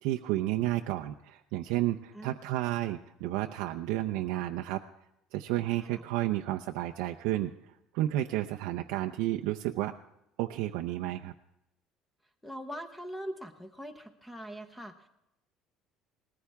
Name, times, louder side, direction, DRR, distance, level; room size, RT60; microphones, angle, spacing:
voice 1, 0.0-4.8 5.3-7.5 7.9-9.9 10.4-11.3, right 15 dB, 85° right, 4 dB, 0.6 m, -31 dB
voice 2, 12.4-15.1, equal, 5° left, 7 dB, 0.8 m, -42 dB
19.5 x 14.5 x 3.5 m, 0.84 s
cardioid pair, 165°, 0 cm